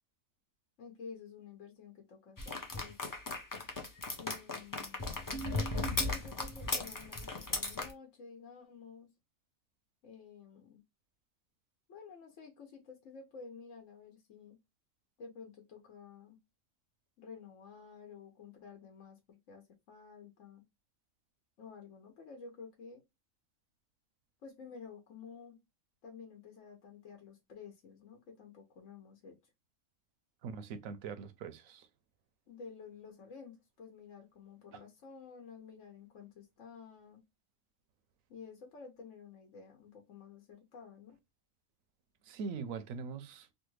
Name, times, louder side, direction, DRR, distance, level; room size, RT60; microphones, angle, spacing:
voice 1, 0.8-3.2 4.2-5.2 6.0-9.1 10.0-10.8 11.9-14.6 15.2-16.4 17.2-20.6 21.6-23.0 24.4-25.6 26.0-29.3 32.5-37.2 38.3-41.2, left 5 dB, 65° left, 1.2 m, -51 dB
sound 1, 2.4-7.9, left 2 dB, 30° left, 0.3 m, -36 dB
voice 2, 30.4-31.9 34.7-34.8 42.3-43.5, right 5 dB, 80° right, 1.0 m, -42 dB
3.2 x 2.3 x 3.1 m
omnidirectional pair, 1.4 m